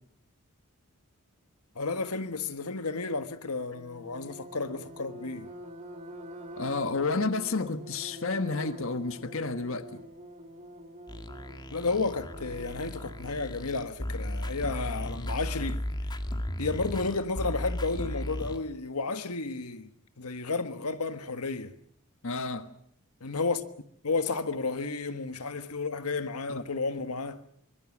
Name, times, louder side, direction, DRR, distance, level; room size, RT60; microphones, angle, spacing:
voice 1, 1.7-5.5 11.7-15.8 16.6-19.9 20.2-21.8 23.2-23.7 24.0-27.4, left 3 dB, 90° left, 1.4 m, -32 dB
sound 1, 3.7-13.4, equal, 35° right, 3.3 m, -46 dB
voice 2, 6.5-10.0 22.2-22.7 26.5-26.6, left 3 dB, 65° left, 1.3 m, -31 dB
sound 2, 11.1-18.6, left 1 dB, 20° left, 1.8 m, -35 dB
25.0 x 22.5 x 7.3 m
head